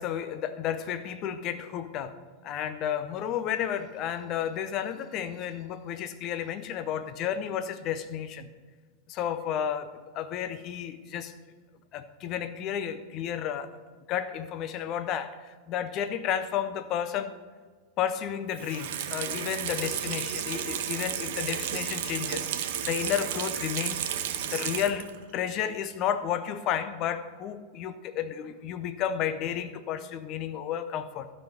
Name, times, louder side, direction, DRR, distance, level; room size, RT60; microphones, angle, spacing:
voice 1, 0.0-2.2 2.4-8.5 9.1-11.3 11.9-13.7 14.1-17.4 18.0-24.1 24.5-31.3, left 9 dB, 35° left, 11 dB, 0.7 m, -32 dB
Water tap faucet / Sink (filling or washing), 18.5-25.2 25.6-25.7, right 9 dB, 55° right, 0.8 m, -33 dB
12.0 x 5.5 x 6.0 m, 1.5 s
figure-of-eight pair, 90°, 0 cm